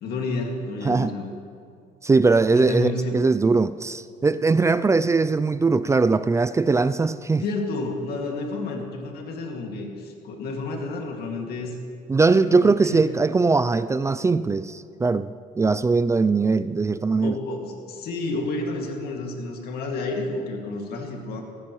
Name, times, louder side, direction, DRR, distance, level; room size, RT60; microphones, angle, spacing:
voice 1, 0.0-1.3 2.5-3.2 7.4-11.8 12.3-13.0 17.2-21.4, left 3 dB, 65° left, 1 dB, 2.2 m, -30 dB
voice 2, 2.0-7.4 12.1-17.4, right 4 dB, 15° right, 14 dB, 0.3 m, -20 dB
17.5 x 16.5 x 3.1 m, 2.3 s
cardioid pair, 110°, 17 cm